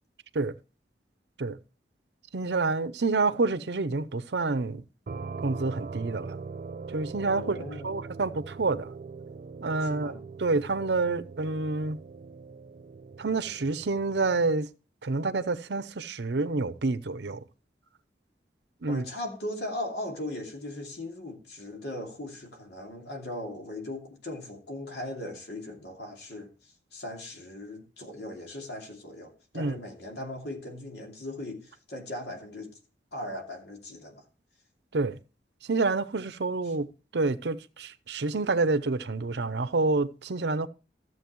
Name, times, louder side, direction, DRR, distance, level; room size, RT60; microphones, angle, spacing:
voice 1, 2.3-4.8 5.4-6.4 6.9-8.9 9.6-10.1 10.4-12.0 13.2-14.7 15.0-17.4 18.8-19.0 29.5-29.7 34.9-35.2 35.7-36.9 37.1-40.7, right 3 dB, 75° right, 0.7 m, -28 dB
sound 1, 5.1-14.6, right 4 dB, 50° right, 0.4 m, -41 dB
voice 2, 7.3-8.0 9.8-10.2 18.9-32.8 33.1-34.2, left 1 dB, 70° left, 2.7 m, -38 dB
13.5 x 7.6 x 3.1 m
head